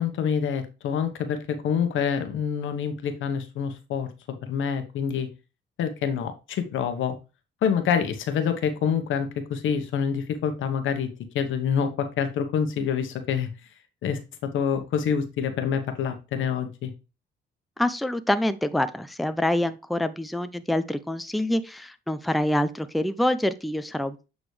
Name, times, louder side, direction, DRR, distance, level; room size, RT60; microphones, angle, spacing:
voice 1, 0.0-4.1 4.4-5.3 5.8-7.1 7.6-11.1 11.3-13.5 14.0-16.9, left 7 dB, 80° left, 1.2 m, -26 dB
voice 2, 17.8-24.3, left 1 dB, ahead, 0.5 m, -26 dB
8.2 x 3.9 x 3.2 m
cardioid pair, 90°, 20 cm